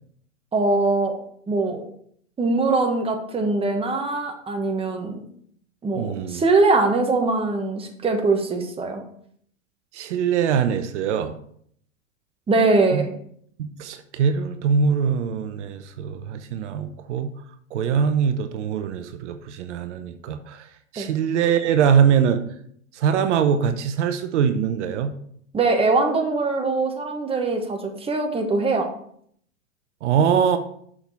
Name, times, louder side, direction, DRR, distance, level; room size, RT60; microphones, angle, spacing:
voice 1, 0.5-1.2 1.5-1.8 2.4-5.2 5.8-9.0 12.5-13.1 21.0-21.1 25.5-28.9, right 3 dB, 15° right, 4 dB, 1.3 m, -22 dB
voice 2, 5.9-6.4 9.9-11.3 12.9-13.1 13.6-17.3 17.7-20.7 20.9-22.4 22.9-25.1 30.0-30.6, right 7 dB, 60° right, 10 dB, 0.8 m, -22 dB
6.4 x 6.1 x 4.7 m, 0.65 s
hypercardioid pair, 110°, 39 cm